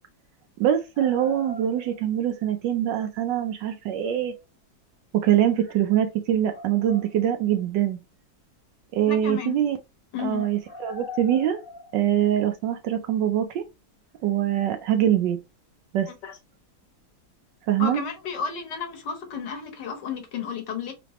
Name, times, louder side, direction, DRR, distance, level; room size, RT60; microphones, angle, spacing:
voice 1, 0.6-4.3 5.1-8.0 8.9-9.8 10.2-11.6 11.9-13.6 14.2-15.4 15.9-16.1 17.7-18.0, right 11 dB, 75° right, 1.1 m, -23 dB
sound 1, 0.9-2.3 4.0-4.4 5.6-5.7 6.5-7.6 10.3-12.5 14.9-15.0, left 4 dB, 20° left, 0.6 m, -43 dB
voice 2, 9.1-9.6 10.1-10.4 16.1-16.4 17.8-20.9, left 6 dB, 65° left, 1.4 m, -32 dB
3.8 x 3.5 x 2.9 m
omnidirectional pair, 2.2 m